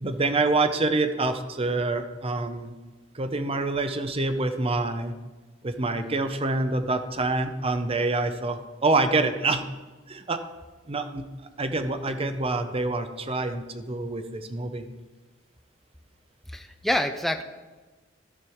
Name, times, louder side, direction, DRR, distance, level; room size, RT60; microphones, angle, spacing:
voice 1, 0.0-2.8 3.1-5.1 5.6-9.6 10.1-10.4 10.9-11.3 11.6-14.8, right 2 dB, 30° right, 8 dB, 0.7 m, -26 dB
voice 2, 16.5-17.4, left 1 dB, ahead, 6 dB, 0.5 m, -26 dB
14.5 x 5.3 x 4.6 m, 1.2 s
head